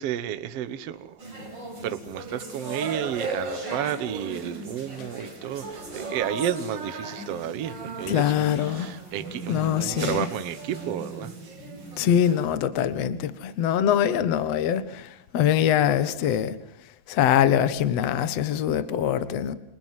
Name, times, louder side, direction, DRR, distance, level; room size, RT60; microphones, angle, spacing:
voice 1, 0.0-1.5 1.8-11.5, right 10 dB, 70° right, 1.4 m, -32 dB
sound 1, 1.2-12.5, right 2 dB, 25° right, 5.5 m, -37 dB
voice 2, 8.1-8.9 9.5-10.3 12.0-16.6 17.1-19.5, left 10 dB, 65° left, 1.6 m, -23 dB
29.0 x 26.5 x 7.6 m
omnidirectional pair, 4.8 m